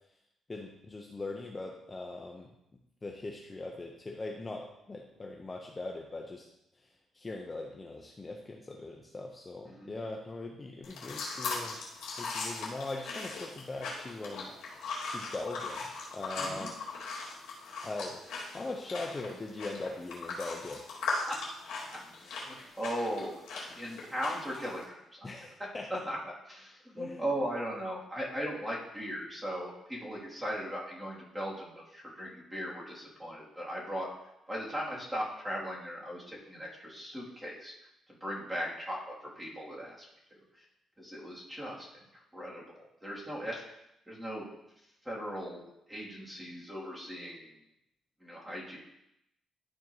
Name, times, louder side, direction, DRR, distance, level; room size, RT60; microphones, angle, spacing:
voice 1, 0.5-2.5 3.0-6.5 6.7-11.8 12.2-14.5 15.1-15.8 16.1-16.7 17.8-18.2 18.5-20.8 25.2-25.9 27.0-27.2, left 2 dB, 25° left, 0 dB, 0.8 m, -40 dB
sound 1, 10.8-24.8, left 3 dB, 85° left, 2.2 m, -39 dB
voice 2, 16.4-16.7 21.3-21.4 22.2-25.3 26.0-26.2 26.5-34.1 34.5-37.7 38.1-40.1 40.3-40.6 41.0-43.6 44.1-44.5 45.0-47.6 48.2-48.8, equal, 10° right, -6 dB, 2.8 m, -38 dB
12.0 x 4.5 x 3.0 m, 0.82 s
cardioid pair, 90°, 0 cm